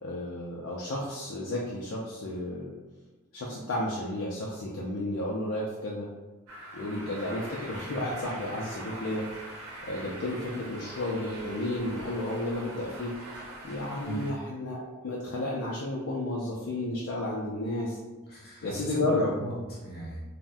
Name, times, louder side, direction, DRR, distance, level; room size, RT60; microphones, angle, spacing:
voice 1, 0.0-2.7 3.3-6.1 6.7-9.2 9.8-13.1 13.6-18.0 18.6-19.3, left 1 dB, 60° left, -4 dB, 0.4 m, -32 dB
sound 1, 6.5-14.3, right 1 dB, 75° right, 0.7 m, -43 dB
voice 2, 18.3-20.2, right 1 dB, 45° left, -6 dB, 1.1 m, -37 dB
3.4 x 2.1 x 2.5 m, 1.2 s
head